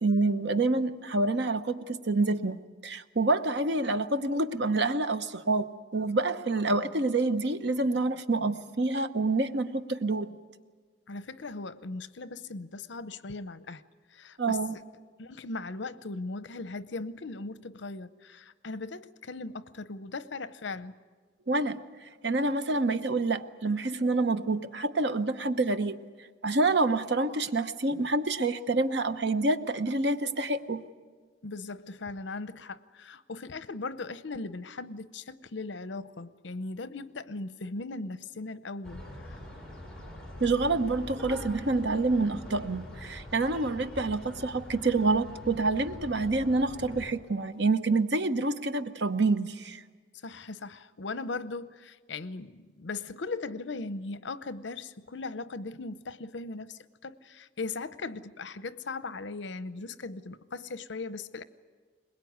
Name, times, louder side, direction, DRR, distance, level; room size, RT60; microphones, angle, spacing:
voice 1, 0.0-10.3 14.4-14.8 21.5-21.8 22.2-26.0 26.4-30.8 40.4-49.8, right 3 dB, 65° right, 1.0 m, -27 dB
voice 2, 11.1-13.8 14.1-14.8 15.2-20.9 31.4-39.3 50.2-61.4, left 3 dB, 75° left, 0.8 m, -38 dB
sound 1, 38.8-47.1, left 1 dB, 5° left, 3.7 m, -44 dB
22.0 x 20.5 x 9.4 m
head